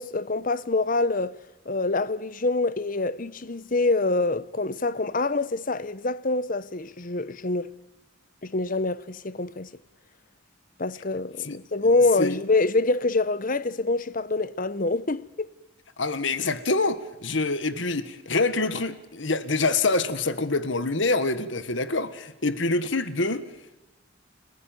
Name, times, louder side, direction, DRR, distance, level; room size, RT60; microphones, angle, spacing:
voice 1, 0.0-1.4 1.7-7.7 8.4-9.7 10.8-15.5, left 3 dB, 40° left, 0.9 m, -25 dB
voice 2, 16.0-23.4, left 3 dB, 65° left, 1.6 m, -26 dB
30.0 x 15.5 x 9.2 m
head